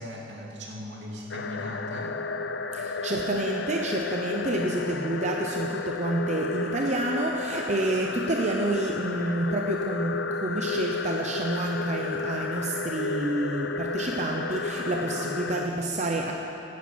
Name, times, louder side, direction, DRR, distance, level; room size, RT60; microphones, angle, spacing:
voice 1, 0.0-2.2, equal, 75° right, -2 dB, 2.6 m, -38 dB
sound 1, 1.3-15.7, left 3 dB, 80° left, 0.6 m, -32 dB
voice 2, 2.7-16.3, right 1 dB, 40° right, 1 dB, 0.8 m, -29 dB
17.0 x 9.6 x 6.3 m, 3.0 s
head